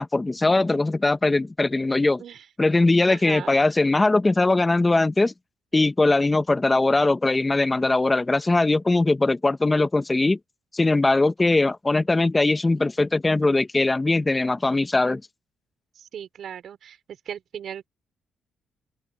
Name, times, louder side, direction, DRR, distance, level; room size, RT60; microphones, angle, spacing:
voice 1, 0.0-2.2 2.6-5.3 5.7-10.4 10.7-15.2, left 2 dB, 20° left, 1.3 m, -21 dB
voice 2, 3.1-3.5 16.0-17.0 17.3-17.9, right 9 dB, 65° right, 5.3 m, -37 dB
open air
cardioid pair, 90°, 0 cm